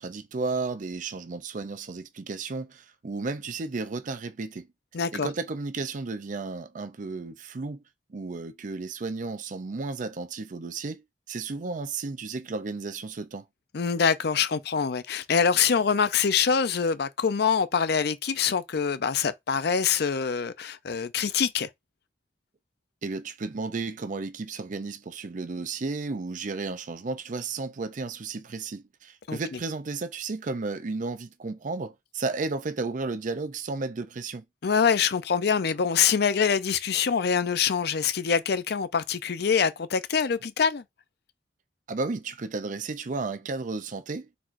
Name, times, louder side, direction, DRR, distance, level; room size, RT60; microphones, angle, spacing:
voice 1, 0.0-4.7 5.1-7.8 8.1-13.4 23.0-34.4 41.9-44.3, right 3 dB, 45° right, 0.5 m, -33 dB
voice 2, 4.9-5.3 13.7-21.7 29.3-29.4 34.6-40.8, left 6 dB, 65° left, 0.5 m, -25 dB
4.4 x 4.1 x 2.5 m
head